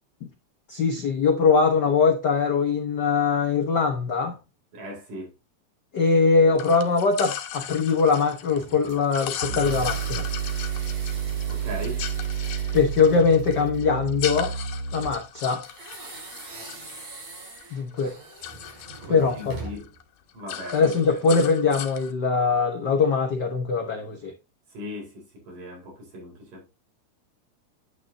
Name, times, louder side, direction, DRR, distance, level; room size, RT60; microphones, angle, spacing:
voice 1, 0.7-4.4 5.9-10.3 12.7-14.6 14.9-15.6 16.0-16.1 17.7-18.1 19.1-19.6 20.7-24.3, left 5 dB, 90° left, 0.9 m, -22 dB
voice 2, 4.7-5.3 11.5-12.1 19.0-19.9 20.3-20.8 21.2-21.4 24.7-26.7, left 1 dB, 90° right, 5.8 m, -38 dB
sound 1, 6.6-17.6 17.9-19.5 19.8-20.0 20.3-22.1, left 10 dB, 70° left, 2.1 m, -37 dB
sound 2, 8.5-13.9 15.6-20.0, right 3 dB, 65° right, 5.1 m, -43 dB
sound 3, 9.4-15.4, right 8 dB, 45° right, 2.9 m, -30 dB
9.2 x 8.8 x 2.7 m
omnidirectional pair, 3.6 m